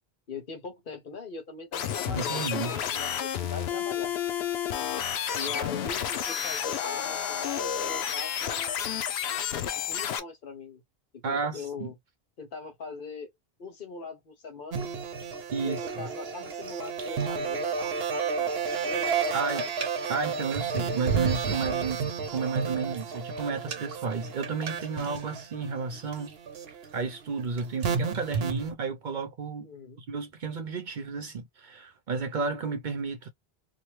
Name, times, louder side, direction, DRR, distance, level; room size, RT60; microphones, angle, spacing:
voice 1, 0.3-4.1 5.3-8.9 9.9-10.8 11.1-11.9 12.4-13.3 13.6-14.9 15.6-18.5 18.8-19.6 29.6-30.0, left 4 dB, 55° left, 1.1 m, -41 dB
sound 1, 1.7-10.2, left 9 dB, 80° left, 0.8 m, -31 dB
voice 2, 2.1-2.8 11.2-11.9 15.5-15.8 19.3-19.6 20.1-22.1 22.3-26.3 26.9-29.7 30.0-33.3, right 5 dB, 55° right, 0.7 m, -32 dB
sound 2, 14.7-28.7, right 5 dB, 75° right, 1.0 m, -31 dB
2.9 x 2.2 x 3.0 m
omnidirectional pair, 1.1 m